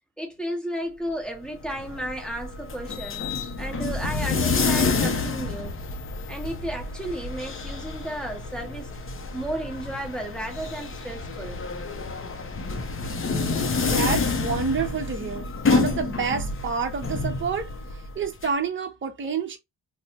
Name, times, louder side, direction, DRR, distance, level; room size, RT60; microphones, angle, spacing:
voice 1, 0.2-3.2 3.6-5.8 6.3-8.9 9.3-11.6, right 1 dB, ahead, 0.8 m, -33 dB
sound 1, 1.4-18.5, left 4 dB, 35° left, 0.5 m, -28 dB
voice 2, 13.8-19.6, right 5 dB, 30° right, 0.7 m, -29 dB
4.0 x 2.0 x 2.8 m
wide cardioid pair, 155°, 39 cm